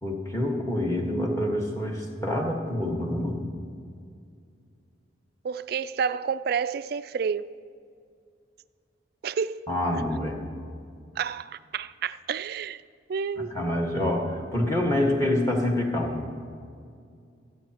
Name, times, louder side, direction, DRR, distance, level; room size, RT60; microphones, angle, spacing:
voice 1, 0.0-3.4 9.7-10.4 13.4-16.3, left 1 dB, 15° left, 1.4 m, -27 dB
voice 2, 5.4-7.5 9.2-9.6 11.2-12.8 13.1-13.5, right 6 dB, 50° right, 0.3 m, -30 dB
25.5 x 8.7 x 2.9 m
head